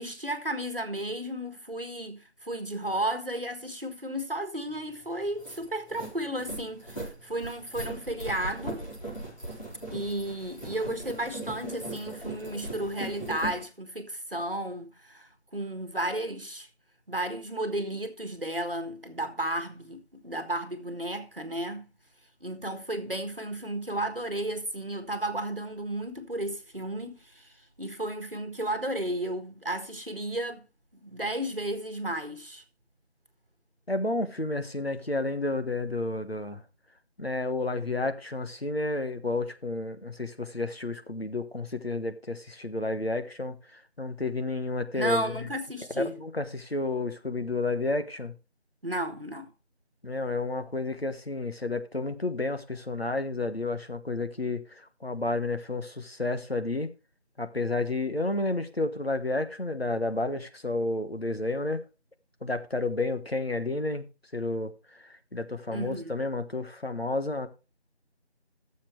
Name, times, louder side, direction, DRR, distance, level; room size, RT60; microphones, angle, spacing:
voice 1, 0.0-8.8 9.9-16.7 17.1-21.9 22.4-27.5 27.8-30.7 30.9-32.6 45.0-46.2 48.8-49.5 65.7-66.2, right 1 dB, 55° right, 1.7 m, -33 dB
sound 1, 4.8-4.9 5.2-13.6, right 1 dB, 40° left, 4.7 m, -39 dB
voice 2, 33.9-36.6 37.2-45.4 45.9-48.3 50.0-56.9 57.4-61.8 62.4-67.5, left 2 dB, 60° left, 1.4 m, -31 dB
15.5 x 7.3 x 3.2 m
figure-of-eight pair, 180°, 34 cm